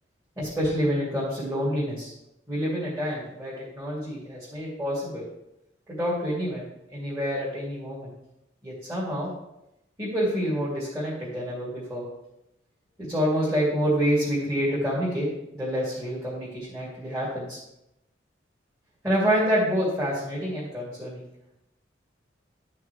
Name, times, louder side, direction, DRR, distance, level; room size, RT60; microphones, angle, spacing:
voice 1, 0.4-2.1 2.5-5.3 5.9-6.6 6.9-8.1 8.6-9.3 10.0-12.1 13.0-15.3 15.5-17.6 19.0-21.2, equal, 20° right, -10 dB, 2.5 m, -27 dB
12.0 x 5.8 x 3.2 m, 0.88 s
head